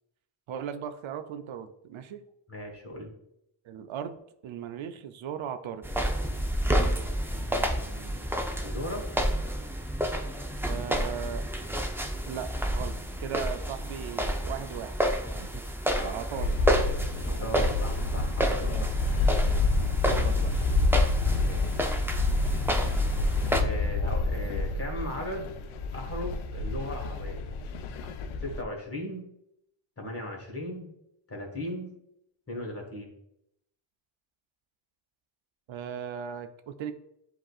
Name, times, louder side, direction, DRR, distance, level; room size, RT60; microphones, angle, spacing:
voice 1, 0.5-2.2 3.6-4.2 4.4-5.8 10.6-11.5 12.3-14.9 15.4-15.6 16.0-16.5 18.7-18.9 20.0-20.5 35.7-36.9, right 8 dB, 75° right, 9 dB, 0.5 m, -37 dB
voice 2, 2.5-3.1 7.2-9.1 15.9-16.1 17.2-19.3 21.4-21.7 23.6-25.5 25.9-27.4 28.4-29.3 30.0-30.9 31.3-31.9 32.5-33.1, left 1 dB, 30° left, 1 dB, 1.6 m, -37 dB
sound 1, 5.8-23.6, equal, 5° right, 0.5 m, -30 dB
sound 2, 16.3-28.6, left 3 dB, 80° left, 0.5 m, -28 dB
7.5 x 2.8 x 2.3 m, 0.78 s
cardioid pair, 60°, 47 cm